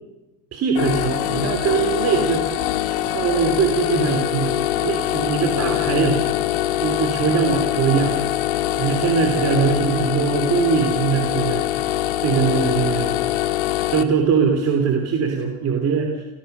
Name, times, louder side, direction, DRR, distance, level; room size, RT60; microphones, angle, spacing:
voice 1, 0.5-6.2 6.8-8.2 8.8-11.7 12.2-13.2 13.9-16.2, right 5 dB, 35° right, 3 dB, 3.1 m, -21 dB
sound 1, 0.7-14.0, left 13 dB, 80° left, 1.9 m, -23 dB
29.5 x 17.0 x 6.7 m, 1.0 s
cardioid pair, 140°, 41 cm